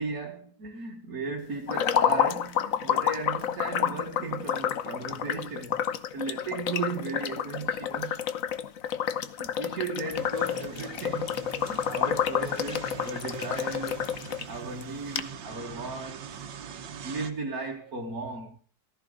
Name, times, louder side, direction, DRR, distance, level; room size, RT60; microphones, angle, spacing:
voice 1, 0.0-5.8 6.1-8.2 9.3-11.4 11.7-14.0 14.5-16.7 17.0-18.6, right 3 dB, 55° right, 2.0 m, -36 dB
sound 1, 1.7-14.4 14.8-14.9 15.2-15.3, left 9 dB, 55° left, 1.1 m, -29 dB
sound 2, 10.1-17.3, right 7 dB, 90° right, 1.8 m, -42 dB
15.0 x 14.5 x 3.9 m
omnidirectional pair, 2.0 m